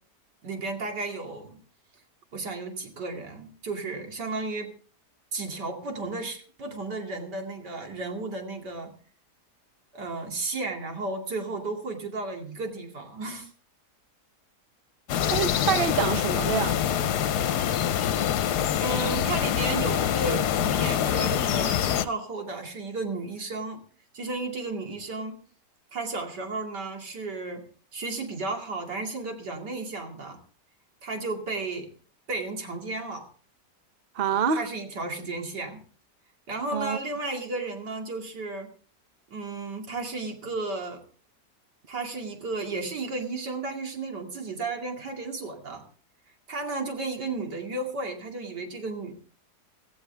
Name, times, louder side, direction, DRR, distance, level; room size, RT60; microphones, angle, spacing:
voice 1, 0.4-1.6 2.3-4.7 5.3-8.9 9.9-13.5 18.8-23.8 24.1-25.4 25.9-27.6 27.9-30.4 31.0-31.9 32.3-33.3 34.5-35.8 36.5-38.7 39.3-41.0 41.9-45.8 46.5-49.1, right 3 dB, 85° right, 3.0 m, -33 dB
sound 1, 15.1-22.1, left 10 dB, 75° left, 1.3 m, -25 dB
voice 2, 15.2-16.8 34.2-34.6 36.7-37.0, right 7 dB, 45° right, 0.8 m, -26 dB
17.0 x 14.0 x 3.4 m
omnidirectional pair, 1.8 m